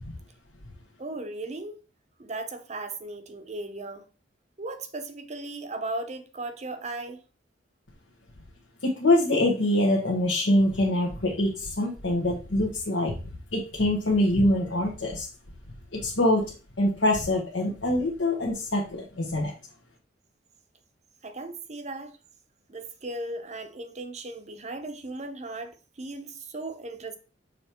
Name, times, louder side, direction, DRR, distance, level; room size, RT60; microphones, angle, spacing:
voice 1, 1.0-1.8 2.2-4.0 4.6-7.2 21.2-22.1 22.7-27.2, right 2 dB, 35° right, 0.8 m, -37 dB
voice 2, 8.8-15.3 15.9-16.4 16.8-19.5, left 1 dB, 70° left, 1.2 m, -24 dB
6.6 x 3.4 x 4.4 m
head